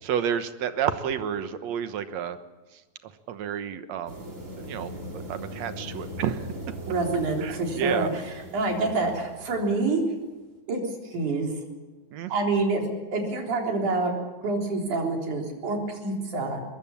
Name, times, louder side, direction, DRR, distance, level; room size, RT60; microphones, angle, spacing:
voice 1, 0.0-2.4 2.7-4.3 4.6-6.5 7.4-8.1 12.1-12.3, right 8 dB, 70° right, 10 dB, 2.3 m, -31 dB
sound 1, 4.1-10.0, equal, 25° right, 3.6 m, -40 dB
voice 2, 6.9-8.1 8.5-10.0 10.7-10.8 11.1-11.5 12.3-12.8 13.1-14.1 14.4-16.6, right 3 dB, 90° right, 1 dB, 5.3 m, -26 dB
22.5 x 22.0 x 7.3 m, 1.2 s
omnidirectional pair, 3.4 m